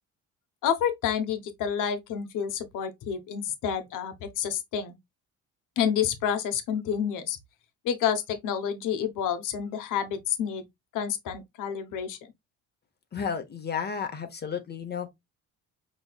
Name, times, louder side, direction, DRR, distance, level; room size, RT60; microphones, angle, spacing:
voice 1, 0.6-5.0 5.8-7.4 7.8-10.7 10.9-12.2, left 8 dB, 75° left, 1.0 m, -29 dB
voice 2, 13.1-15.1, left 6 dB, 30° left, 0.9 m, -32 dB
5.9 x 3.1 x 2.3 m
cardioid pair, 140°, 31 cm